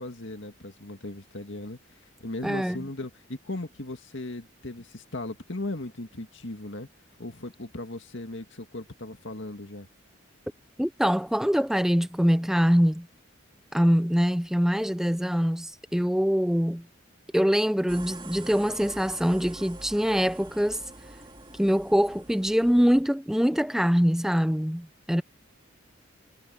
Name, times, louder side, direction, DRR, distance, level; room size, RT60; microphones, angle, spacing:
voice 1, 0.0-6.9 7.2-9.9, left 2 dB, 65° left, 2.0 m, -37 dB
voice 2, 2.4-2.9 10.8-13.1 13.7-16.9 17.3-20.8 21.6-25.2, equal, ahead, 0.5 m, -24 dB
sound 1, 17.9-23.0, right 2 dB, 25° right, 3.0 m, -45 dB
head